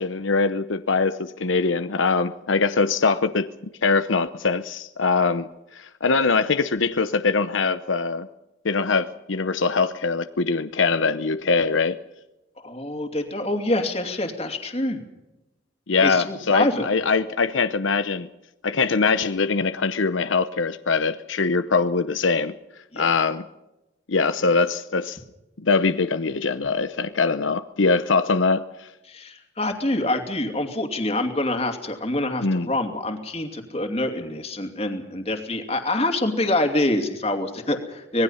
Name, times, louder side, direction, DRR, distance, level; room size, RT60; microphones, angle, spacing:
voice 1, 0.0-3.5 3.8-8.3 8.6-12.0 15.9-18.3 18.6-22.5 23.0-23.4 24.1-25.2 25.6-28.9 32.4-32.7, left 4 dB, 80° left, 11 dB, 0.8 m, -22 dB
voice 2, 12.6-15.0 16.0-16.9 22.9-23.1 29.1-38.2, left 1 dB, 30° left, 6 dB, 2.7 m, -26 dB
25.5 x 20.0 x 5.7 m, 0.96 s
head